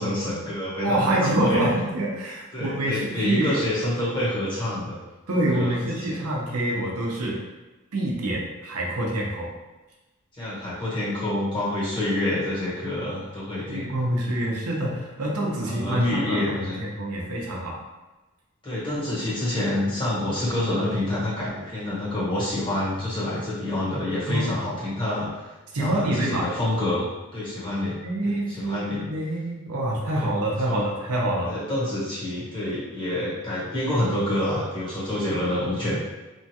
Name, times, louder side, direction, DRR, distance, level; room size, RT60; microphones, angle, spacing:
voice 1, 0.0-1.6 2.5-5.0 5.5-6.3 10.3-13.9 15.6-16.8 18.6-28.0 28.2-29.1 30.1-30.8 31.4-36.0, left 1 dB, 20° left, -9 dB, 1.0 m, -27 dB
voice 2, 0.8-3.6 5.3-7.4 7.9-9.5 13.7-17.8 24.3-24.5 25.7-26.5 28.0-31.5, right 1 dB, 90° right, -2 dB, 0.7 m, -26 dB
3.0 x 2.2 x 2.8 m, 1.1 s
head